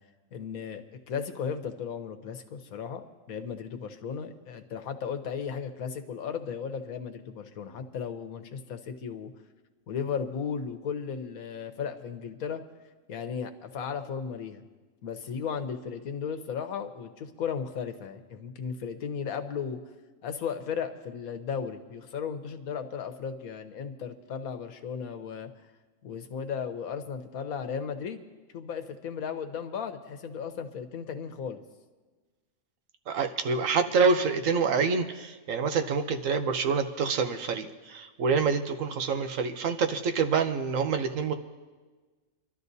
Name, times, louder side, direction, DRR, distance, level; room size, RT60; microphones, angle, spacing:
voice 1, 0.3-9.3 9.9-12.6 13.1-14.6 15.0-19.8 20.2-25.5 26.0-28.2 28.5-31.6, left 6 dB, 85° left, 8 dB, 1.3 m, -35 dB
voice 2, 33.1-41.3, right 5 dB, 70° right, 7 dB, 1.2 m, -27 dB
29.5 x 12.0 x 2.7 m, 1.3 s
omnidirectional pair, 1.4 m